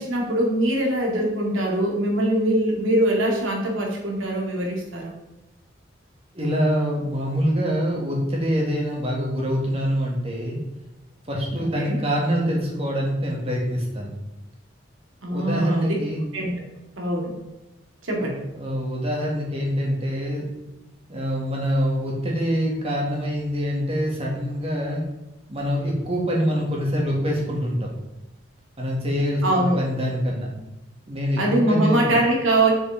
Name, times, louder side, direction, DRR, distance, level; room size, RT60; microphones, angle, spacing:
voice 1, 0.0-5.1 11.5-12.0 15.2-15.9 16.3-16.5 17.0-17.3 18.0-18.4 29.4-29.8 31.4-32.7, right 1 dB, 85° right, 0 dB, 2.2 m, -23 dB
voice 2, 6.3-10.6 11.3-14.1 15.3-16.2 18.2-20.5 21.1-25.0 25.5-27.9 28.8-30.5 31.1-32.0, equal, 30° right, -2 dB, 1.9 m, -25 dB
7.3 x 6.5 x 3.5 m, 0.97 s
head